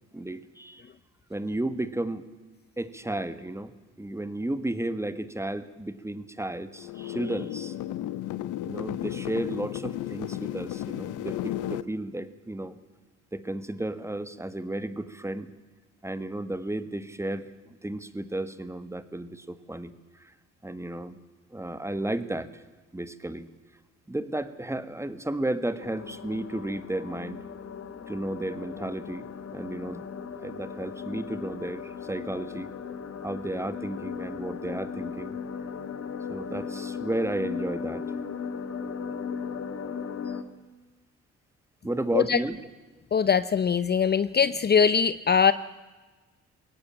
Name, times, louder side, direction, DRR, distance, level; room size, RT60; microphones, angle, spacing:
voice 1, 0.1-0.8 1.3-2.2 2.8-3.7 4.0-7.7 8.6-12.8 13.3-15.5 16.0-19.9 20.2-20.3 20.6-21.2 21.5-22.6 22.9-23.5 24.1-27.4 28.1-30.0 30.4-32.7 33.2-35.3 36.3-38.0 41.8-42.6, right 1 dB, 10° right, 13 dB, 1.5 m, -33 dB
sound 1, 6.8-11.8, left 13 dB, 85° left, 0.8 m, -34 dB
sound 2, 25.8-40.4, left 6 dB, 50° left, 1.8 m, -37 dB
voice 2, 43.1-45.5, left 6 dB, 35° left, 15 dB, 0.6 m, -22 dB
21.5 x 17.5 x 8.8 m, 1.3 s
cardioid pair, 90°, 30 cm